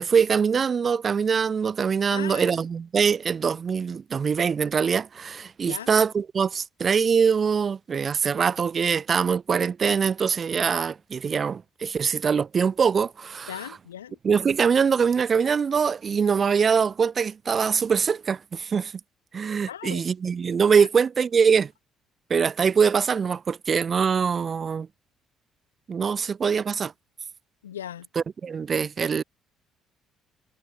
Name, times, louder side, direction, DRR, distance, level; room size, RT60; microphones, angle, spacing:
voice 1, 0.0-13.5 14.2-18.9 19.3-21.7 22.3-24.9 25.9-26.9 28.2-29.2, right 6 dB, 40° right, 0.6 m, -23 dB
voice 2, 2.0-2.6 5.7-5.9 13.5-14.2 19.7-20.0 20.8-20.9 27.6-28.1, left 10 dB, 80° left, 2.0 m, -38 dB
figure-of-eight pair, 45°, 0 cm